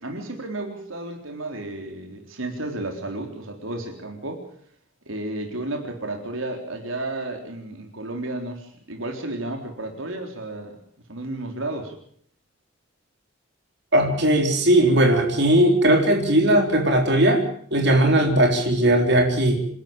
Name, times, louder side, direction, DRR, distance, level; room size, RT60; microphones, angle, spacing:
voice 1, 0.0-4.4 5.1-10.8 11.1-11.9, right 2 dB, 80° right, 3 dB, 3.8 m, -32 dB
voice 2, 13.9-17.4 17.7-19.6, right 1 dB, 55° right, 2 dB, 4.0 m, -18 dB
27.5 x 12.0 x 9.0 m, 0.64 s
head